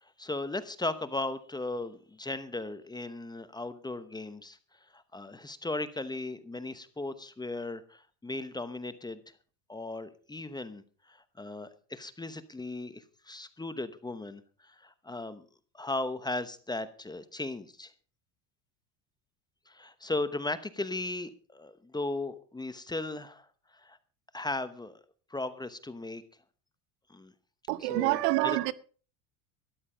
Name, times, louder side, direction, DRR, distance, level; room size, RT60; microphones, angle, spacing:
voice 1, 0.0-4.6 4.9-9.2 9.7-15.4 15.7-17.9 19.7-23.5 23.7-24.0 24.3-25.0 25.3-26.2 27.1-27.3 27.8-28.6, left 2 dB, 10° left, 0.9 m, -37 dB
voice 2, 27.7-28.7, right 19 dB, 75° right, 0.9 m, -27 dB
13.0 x 11.0 x 5.0 m
supercardioid pair, 120°, 49 cm